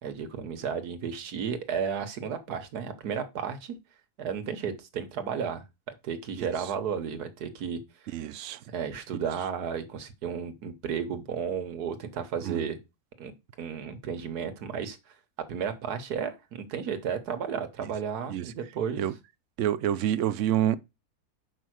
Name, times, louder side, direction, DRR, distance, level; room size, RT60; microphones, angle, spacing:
voice 1, 0.0-3.8 4.2-8.2 8.7-12.8 13.2-13.3 13.6-15.1 15.5-19.0, right 7 dB, 80° right, 1.6 m, -33 dB
voice 2, 8.1-8.6 9.1-9.2 12.4-12.6 18.3-18.5 19.0-19.1 19.6-20.8, right 11 dB, 65° right, 0.8 m, -27 dB
5.5 x 5.1 x 6.3 m
omnidirectional pair, 1.6 m